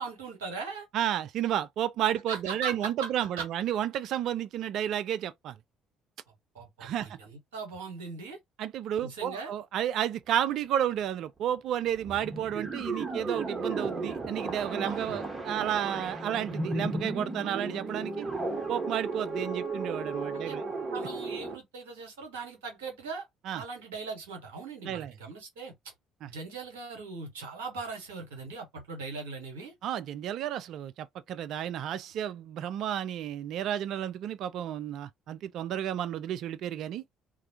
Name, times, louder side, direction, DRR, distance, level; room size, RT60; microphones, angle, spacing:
voice 1, 0.0-0.9 2.3-3.1 3.3-3.5 6.5-8.4 9.0-9.5 14.8-15.2 20.3-20.6 20.9-23.2 23.5-25.9 26.2-29.7, right 4 dB, 75° right, 1.0 m, -40 dB
voice 2, 0.9-5.6 6.8-7.2 8.6-18.3 18.7-20.6 23.5-23.6 24.8-25.1 26.2-26.3 29.8-37.0, right 10 dB, 55° right, 0.3 m, -32 dB
sound 1, 11.9-21.6, right 3 dB, 30° right, 1.0 m, -34 dB
2.3 x 2.1 x 2.7 m
figure-of-eight pair, 50°, 0 cm